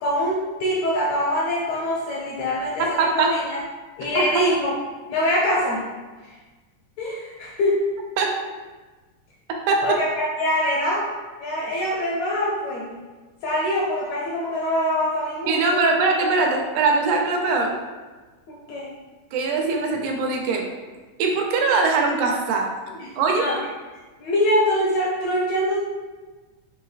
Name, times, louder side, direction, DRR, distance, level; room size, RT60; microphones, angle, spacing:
voice 1, 0.0-3.6 4.0-4.7 5.1-5.9 6.2-6.3 7.0-7.8 9.8-11.1 11.4-13.0 13.4-15.8 18.5-18.9 23.0-23.6 24.2-25.8, left 1 dB, 80° left, -4 dB, 1.6 m, -24 dB
voice 2, 2.8-3.3 4.1-4.4 8.2-8.3 9.7-9.8 15.5-17.8 19.3-20.7 21.2-22.7 23.2-23.4, right 4 dB, 85° right, 1 dB, 2.0 m, -21 dB
5.3 x 3.1 x 2.3 m, 1.3 s
omnidirectional pair, 3.5 m